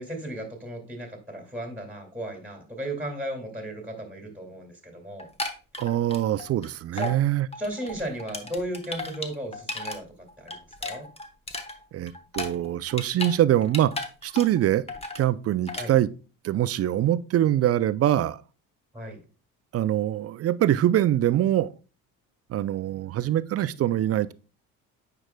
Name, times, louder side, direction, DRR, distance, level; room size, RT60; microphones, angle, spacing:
voice 1, 0.0-5.3 6.9-7.1 7.6-10.1 10.4-11.1 15.8-15.9 18.9-19.2, right 1 dB, 5° right, 2.1 m, -35 dB
sound 1, 5.2-6.7 7.0-7.2 7.5-10.0 10.3-13.4 13.6-14.6 14.9-15.2 15.7-15.9, left 2 dB, 15° left, 1.1 m, -35 dB
voice 2, 5.8-7.5 11.9-13.9 14.2-14.8 15.1-16.1 16.4-18.4 19.7-21.7 22.5-24.3, right 12 dB, 40° right, 0.4 m, -23 dB
8.9 x 4.8 x 2.2 m
supercardioid pair, 70°, 40 cm